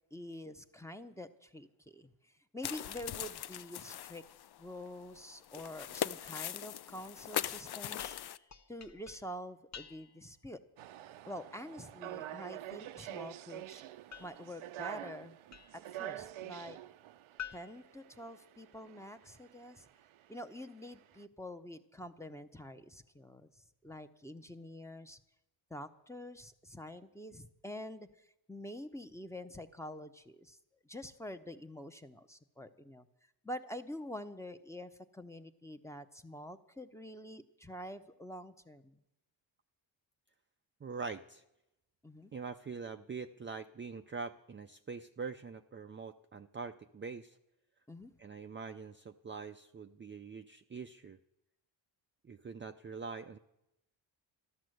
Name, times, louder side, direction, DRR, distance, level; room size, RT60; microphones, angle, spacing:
voice 1, 0.1-4.2 4.6-8.2 8.7-10.6 11.3-13.8 14.2-15.4 15.7-16.8 17.5-19.8 20.3-23.5 23.8-25.2 25.7-30.6 30.8-33.1 33.4-39.0 42.0-42.3 47.9-48.1, left 1 dB, 5° left, 8 dB, 0.8 m, -47 dB
sound 1, 2.6-8.4, left 11 dB, 55° left, 0.5 m, -40 dB
sound 2, 8.0-10.4 14.1-16.0 17.4-18.8, left 8 dB, 35° left, 0.9 m, -51 dB
sound 3, 10.8-21.2, right 13 dB, 85° right, 0.7 m, -47 dB
voice 2, 40.8-41.4 42.3-47.4 48.2-51.2 52.2-53.4, right 5 dB, 25° right, 6 dB, 0.5 m, -44 dB
13.5 x 12.0 x 7.8 m, 0.87 s
cardioid pair, 105°, 47 cm